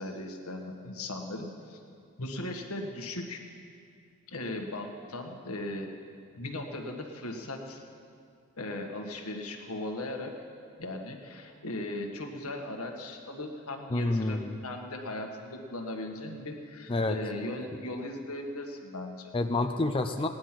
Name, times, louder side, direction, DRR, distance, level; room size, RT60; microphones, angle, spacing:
voice 1, 0.0-1.8 2.2-3.4 4.3-5.9 6.3-7.8 8.6-10.3 10.8-19.3, left 1 dB, 85° left, 2 dB, 1.6 m, -38 dB
voice 2, 13.9-14.6 16.9-17.2 19.3-20.3, left 2 dB, 25° left, 5 dB, 0.5 m, -28 dB
17.5 x 10.5 x 5.9 m, 2.3 s
head